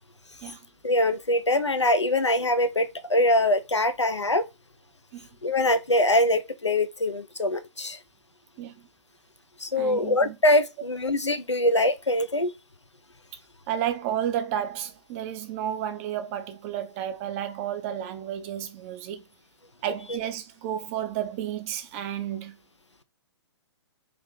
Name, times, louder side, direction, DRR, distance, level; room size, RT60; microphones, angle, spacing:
voice 1, 0.8-4.4 5.4-8.0 9.6-12.5, left 1 dB, 85° left, 0.5 m, -23 dB
voice 2, 9.7-10.4 13.7-19.2 19.8-22.6, right 10 dB, 30° right, 0.5 m, -32 dB
3.4 x 2.8 x 3.8 m
figure-of-eight pair, 120°, 14 cm